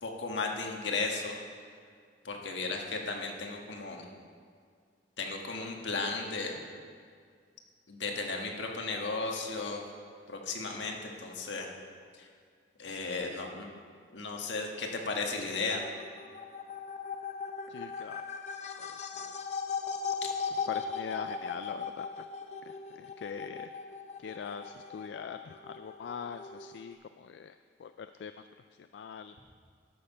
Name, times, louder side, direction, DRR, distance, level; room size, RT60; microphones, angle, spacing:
voice 1, 0.0-1.3 2.2-4.0 5.2-6.6 7.9-9.8 10.3-11.7 12.1-12.3 12.8-13.7 14.1-15.8, left 3 dB, 90° left, 1 dB, 1.5 m, -35 dB
sound 1, 15.7-26.9, left 5 dB, 40° left, 0.7 m, -38 dB
voice 2, 17.7-18.2 18.8-19.4 20.7-22.3 22.6-23.7 24.2-28.5 28.9-29.3, left 6 dB, 70° left, 10 dB, 0.3 m, -43 dB
13.0 x 6.6 x 5.5 m, 2.1 s
head